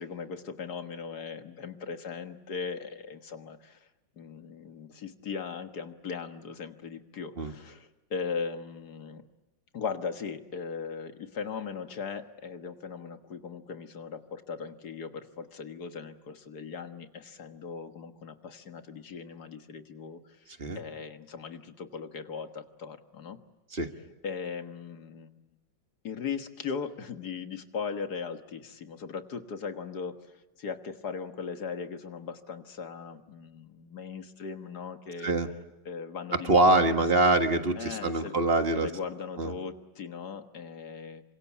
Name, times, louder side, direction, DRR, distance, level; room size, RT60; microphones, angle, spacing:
voice 1, 0.0-3.9 4.2-9.2 9.7-20.4 20.8-23.4 24.2-25.4 26.0-30.3 30.6-35.3 35.9-37.1 37.8-38.4 38.7-41.2, left 5 dB, 60° left, 7 dB, 1.9 m, -38 dB
voice 2, 36.4-38.9 39.4-39.5, right 2 dB, 35° right, 6 dB, 1.8 m, -24 dB
28.0 x 25.0 x 8.5 m, 1.0 s
omnidirectional pair, 1.9 m